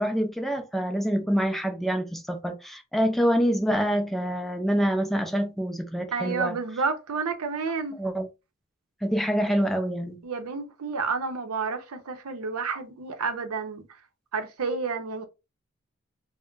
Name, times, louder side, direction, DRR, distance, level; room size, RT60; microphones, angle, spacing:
voice 1, 0.0-6.6 8.0-8.3 9.0-10.2, equal, ahead, 0.3 m, -26 dB
voice 2, 6.1-8.0 10.2-13.8 14.3-15.2, right 4 dB, 85° right, 0.6 m, -30 dB
2.2 x 2.1 x 3.7 m
head